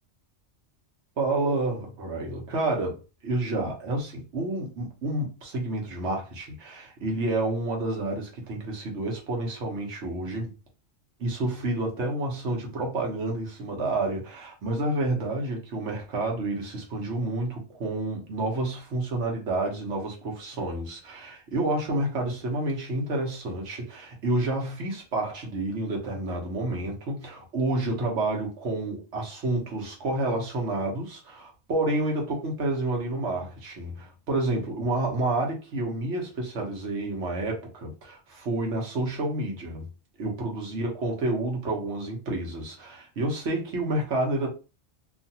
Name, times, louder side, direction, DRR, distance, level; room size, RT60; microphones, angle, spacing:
voice 1, 1.2-10.5 11.2-39.9 40.2-44.5, right 2 dB, 75° right, 1.2 m, -29 dB
2.8 x 2.4 x 2.7 m
omnidirectional pair, 1.2 m